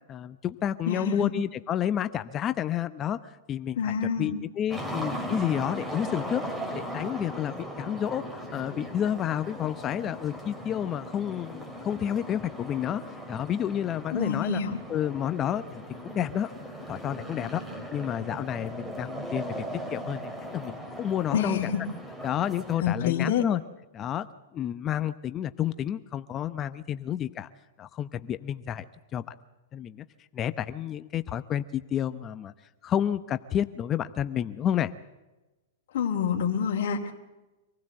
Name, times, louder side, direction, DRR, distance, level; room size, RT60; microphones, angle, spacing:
voice 1, 0.1-3.8 4.2-6.4 6.9-14.6 14.9-17.6 17.9-19.6 19.9-21.6 22.2-23.6 23.9-24.3 24.5-27.5 27.8-28.8 29.1-29.3 29.7-30.0 30.3-32.5 32.8-34.9, left 10 dB, 30° left, 12 dB, 0.8 m, -30 dB
voice 2, 0.9-1.3 3.8-4.4 14.1-14.8 21.3-21.8 22.8-23.4 35.9-37.1, left 7 dB, 65° left, -1 dB, 2.5 m, -27 dB
sound 1, 4.7-22.8, equal, 10° right, 3.3 m, -38 dB
25.5 x 16.5 x 7.8 m, 1.1 s
hypercardioid pair, 130°, 0 cm